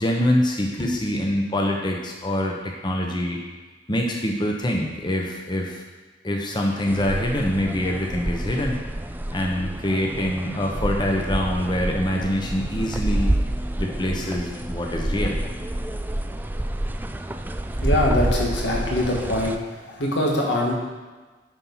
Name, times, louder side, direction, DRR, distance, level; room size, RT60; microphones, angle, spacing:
voice 1, 0.0-3.4 3.9-5.8 6.2-8.8 9.3-13.3 13.8-15.4, left 1 dB, 25° left, 0 dB, 0.9 m, -25 dB
sound 1, 6.9-19.6, right 1 dB, 10° right, 0.4 m, -28 dB
voice 2, 17.8-19.6 19.9-20.7, left 1 dB, 90° left, -2 dB, 1.8 m, -23 dB
10.0 x 4.4 x 5.6 m, 1.3 s
head